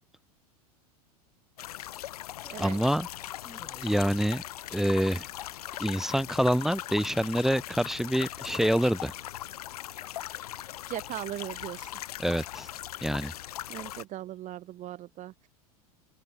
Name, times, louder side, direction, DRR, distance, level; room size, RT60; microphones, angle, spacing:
sound 1, 1.6-14.0, left 13 dB, 70° left, 5.6 m, -40 dB
voice 1, 2.4-3.1 3.5-4.4 4.7-5.3 5.8-9.1 12.2-12.7 13.0-13.3, equal, ahead, 0.5 m, -27 dB
voice 2, 10.9-12.0 13.7-15.5, right 14 dB, 40° right, 2.1 m, -39 dB
open air
figure-of-eight pair, 85°, 20 cm